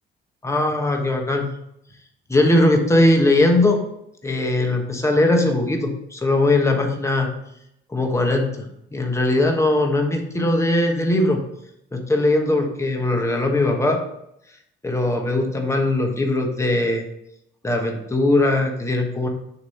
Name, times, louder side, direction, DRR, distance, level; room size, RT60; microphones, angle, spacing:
voice 1, 0.4-1.5 2.3-3.9 4.2-7.3 7.9-8.7 8.9-11.4 11.9-14.0 14.8-17.0 17.6-19.3, left 2 dB, 15° left, 2 dB, 1.2 m, -20 dB
6.8 x 3.0 x 5.6 m, 0.78 s
cardioid pair, 90°, 20 cm